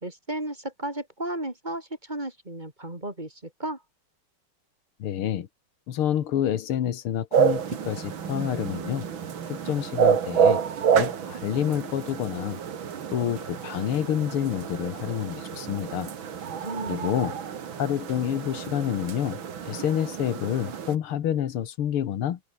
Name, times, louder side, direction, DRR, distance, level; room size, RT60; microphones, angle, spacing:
voice 1, 0.0-3.8 16.6-17.3, right 1 dB, 20° right, 4.1 m, -34 dB
voice 2, 5.0-5.5 5.9-9.1 9.5-10.6 10.9-12.6 13.1-16.1 16.9-17.4 17.8-19.4 19.7-22.4, left 10 dB, 85° left, 2.2 m, -28 dB
sound 1, 7.3-21.0, right 7 dB, 65° right, 2.6 m, -28 dB
open air
omnidirectional pair, 2.3 m